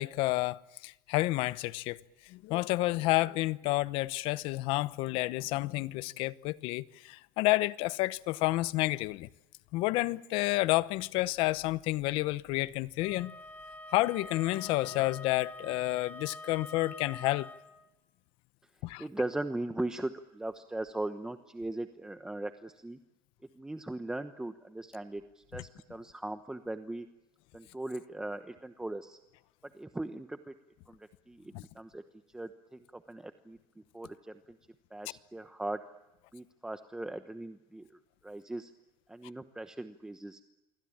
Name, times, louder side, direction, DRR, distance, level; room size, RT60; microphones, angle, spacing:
voice 1, 0.0-2.0 2.3-9.3 9.7-13.3 13.9-17.5 18.8-19.1 31.5-31.6, left 19 dB, 65° left, 0.9 m, -30 dB
Wind instrument woodwind instrument, 13.0-17.7, left 2 dB, 15° left, 3.0 m, -46 dB
voice 2, 19.0-23.0 23.6-27.1 27.5-29.2 29.7-30.5 30.9-31.0 31.3-32.0 32.3-33.6 33.9-34.4 34.9-35.8 36.3-37.9 38.2-38.7 39.1-40.4, right 2 dB, 5° right, 1.1 m, -39 dB
27.0 x 24.0 x 8.7 m
cardioid pair, 135°, 10 cm